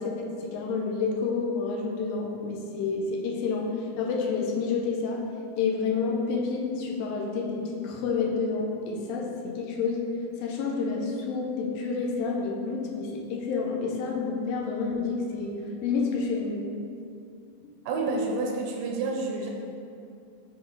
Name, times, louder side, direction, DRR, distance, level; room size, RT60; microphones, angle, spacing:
voice 1, 0.0-5.2 5.6-10.1 10.4-16.6, left 4 dB, 80° left, -1 dB, 2.4 m, -29 dB
voice 2, 17.9-19.5, right 3 dB, 80° right, 0 dB, 2.3 m, -29 dB
6.7 x 4.2 x 3.7 m, 2.5 s
omnidirectional pair, 4.2 m